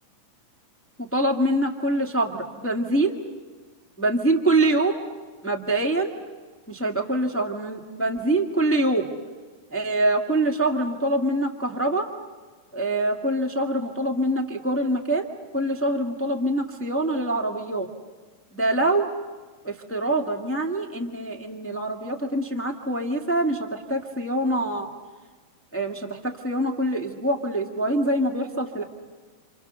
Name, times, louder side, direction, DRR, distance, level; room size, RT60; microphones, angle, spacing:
voice 1, 1.0-3.2 4.0-5.0 5.4-6.1 6.7-9.1 9.7-12.1 12.7-15.3 15.5-17.9 18.5-19.1 19.6-24.9 25.7-28.8, right 1 dB, 5° left, 2 dB, 0.9 m, -24 dB
28.5 x 28.0 x 6.8 m, 1.4 s
omnidirectional pair, 3.6 m